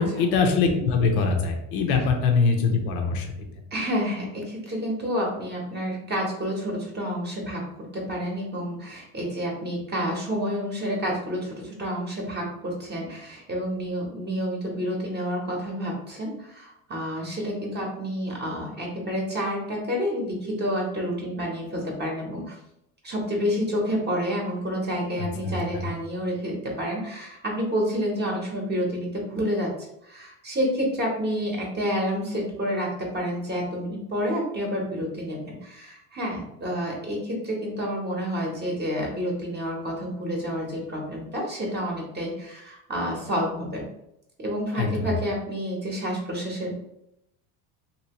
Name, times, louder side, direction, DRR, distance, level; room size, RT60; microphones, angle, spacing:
voice 1, 0.0-3.3 25.7-25.8 44.8-45.1, left 4 dB, 65° left, 3 dB, 0.8 m, -22 dB
voice 2, 3.7-7.7 7.9-22.6 23.0-29.7 30.0-43.8 44.4-46.8, equal, 25° right, -2 dB, 0.9 m, -29 dB
2.9 x 2.8 x 2.9 m, 0.81 s
supercardioid pair, 100°, 43 cm